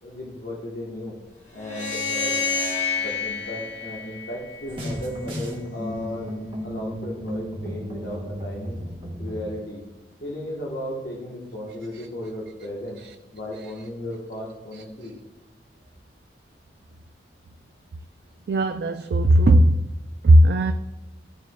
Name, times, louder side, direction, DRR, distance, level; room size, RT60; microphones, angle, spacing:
voice 1, 0.0-1.2 1.5-2.4 3.0-6.3 6.6-8.8 9.2-9.8 10.2-13.0 13.3-15.1, left 1 dB, 60° left, -4 dB, 1.3 m, -35 dB
sound 1, 1.6-4.9, left 5 dB, 40° left, 1.6 m, -28 dB
sound 2, 4.7-9.5, equal, 30° right, 1.4 m, -34 dB
voice 2, 14.7-15.1 18.5-19.9 20.2-20.7, right 1 dB, 65° right, 7 dB, 0.3 m, -17 dB
13.5 x 4.6 x 2.3 m, 1.1 s
head